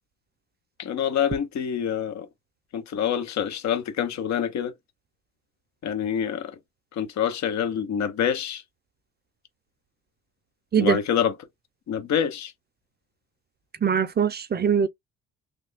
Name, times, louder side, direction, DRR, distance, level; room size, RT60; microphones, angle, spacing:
voice 1, 0.8-2.3 2.7-4.7 5.8-6.5 7.0-8.6 10.8-11.3 11.9-12.5, left 8 dB, 65° left, 0.8 m, -26 dB
voice 2, 13.8-14.9, right 7 dB, 35° right, 0.5 m, -22 dB
3.2 x 2.2 x 3.4 m
cardioid pair, 90°, 30 cm